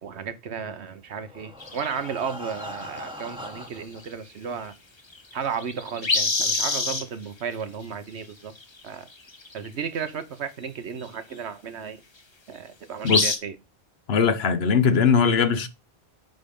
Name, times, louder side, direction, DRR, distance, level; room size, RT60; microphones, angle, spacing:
voice 1, 0.0-4.7 5.3-8.5 8.8-9.1 9.5-12.0 12.5-13.6, right 6 dB, 80° right, 1.2 m, -34 dB
Breathing, 1.1-4.0 4.8-4.9 5.2-5.3 5.8-5.9, left 1 dB, 5° right, 1.1 m, -40 dB
sound 1, 1.6-2.8 3.4-3.8 4.0-4.1 5.1-7.0 8.6-8.8 9.3-9.7 10.6-10.7 13.1-13.4, left 3 dB, 25° left, 0.8 m, -25 dB
voice 2, 13.0-13.3 14.1-15.7, left 6 dB, 70° left, 1.1 m, -20 dB
9.3 x 3.5 x 5.3 m
omnidirectional pair, 1.1 m